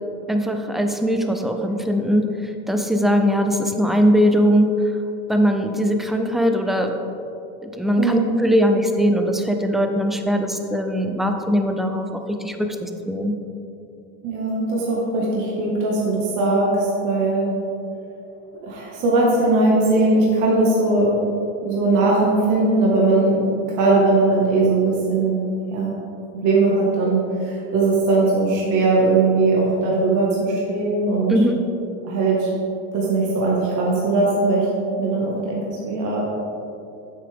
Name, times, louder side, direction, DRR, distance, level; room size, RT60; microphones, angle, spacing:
voice 1, 0.3-4.7 5.3-6.9 7.6-13.4 31.3-31.6, equal, ahead, 4 dB, 0.3 m, -20 dB
voice 2, 8.0-8.3 14.2-17.5 18.5-21.1 21.6-23.4 23.8-25.4 25.7-25.9 26.4-31.3 32.0-32.5 32.9-34.7 35.0-36.2, right 3 dB, 50° right, -4 dB, 1.7 m, -19 dB
8.8 x 7.6 x 3.5 m, 2.7 s
supercardioid pair, 130°, 38 cm